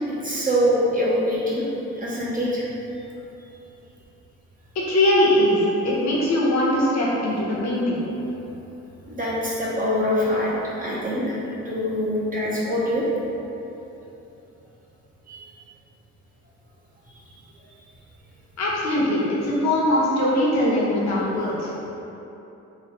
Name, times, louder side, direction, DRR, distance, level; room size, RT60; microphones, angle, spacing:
voice 1, 0.1-1.7 1.9-2.6 9.1-11.4 11.6-13.0 15.3-15.4, equal, 30° right, -7 dB, 0.7 m, -24 dB
voice 2, 4.7-8.0 18.6-21.7, left 1 dB, 65° left, -5 dB, 0.9 m, -21 dB
3.1 x 2.3 x 3.9 m, 3.0 s
cardioid pair, 90°, 30 cm